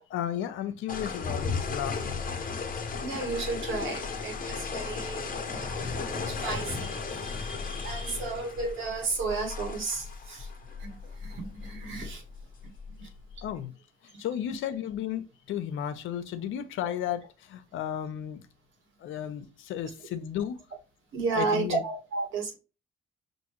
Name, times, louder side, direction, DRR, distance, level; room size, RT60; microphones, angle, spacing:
voice 1, 0.1-2.2 13.4-13.7 14.0-18.5 19.0-20.6 21.4-21.8, left 10 dB, 80° left, 0.7 m, -34 dB
sound 1, 0.9-13.5, left 5 dB, 45° left, 1.0 m, -35 dB
voice 2, 3.0-10.5 10.8-12.2 13.0-13.1 14.1-14.2 21.1-22.5, right 4 dB, 80° right, 1.7 m, -33 dB
5.4 x 2.6 x 3.0 m
cardioid pair, 90°, 20 cm